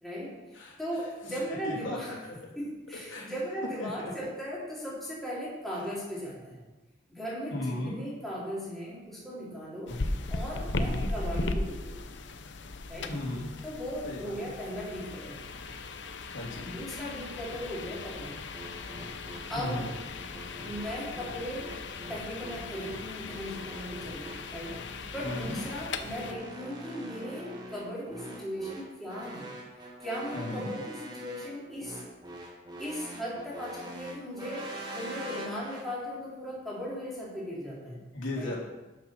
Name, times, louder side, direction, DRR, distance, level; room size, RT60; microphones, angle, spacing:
voice 1, 0.0-2.1 2.5-6.6 7.1-9.9 10.3-12.2 12.9-13.1 13.6-15.4 16.6-18.4 19.5-19.9 20.6-21.7 22.1-24.8 25.1-29.5 30.0-32.0 32.8-38.0 38.4-38.6, equal, ahead, -8 dB, 3.4 m, -37 dB
voice 2, 0.5-1.0 1.3-1.4 1.6-2.4 3.1-3.3 3.8-4.1 5.7-5.8 7.5-7.9 9.9-10.1 10.7-11.1 13.1-13.5 14.0-14.5 16.3-16.7 19.5-19.9 25.2-25.6 30.3-30.7 37.6-38.6, left 1 dB, 80° left, -4 dB, 3.2 m, -36 dB
sound 1, 9.9-26.3, left 3 dB, 65° left, 0.7 m, -38 dB
sound 2, 18.5-35.9, equal, 20° right, 1.9 m, -44 dB
11.5 x 6.2 x 5.9 m, 1.1 s
head